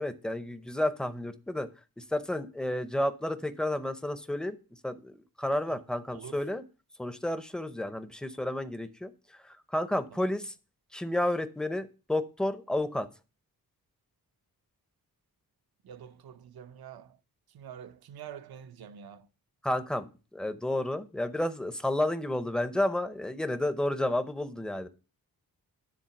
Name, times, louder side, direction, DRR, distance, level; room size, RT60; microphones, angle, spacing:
voice 1, 0.0-1.7 2.0-4.6 4.8-5.1 5.4-6.6 7.0-10.5 10.9-13.1 19.6-24.9, left 1 dB, ahead, 0.6 m, -31 dB
voice 2, 6.1-6.5 10.1-10.3 15.8-17.2 17.5-19.3, right 8 dB, 75° right, 0.7 m, -47 dB
10.5 x 3.6 x 5.8 m
wide cardioid pair, 120°, 37 cm